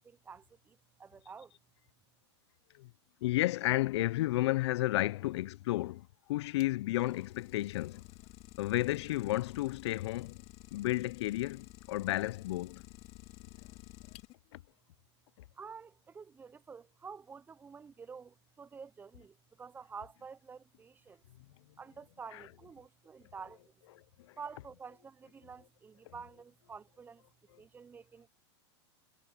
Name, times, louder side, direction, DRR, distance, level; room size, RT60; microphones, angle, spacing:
voice 1, 0.0-1.5 15.6-21.2 21.8-23.6 24.4-27.2 27.6-28.3, right 5 dB, 10° right, 0.5 m, -49 dB
voice 2, 3.2-8.0 8.6-10.4 10.7-12.8 14.5-14.6 22.3-22.4 24.2-24.4 26.1-26.2, left 17 dB, 70° left, 0.4 m, -32 dB
Idling, 6.6-14.6, left 20 dB, 45° left, 1.8 m, -53 dB
hypercardioid pair, 135°, 15 cm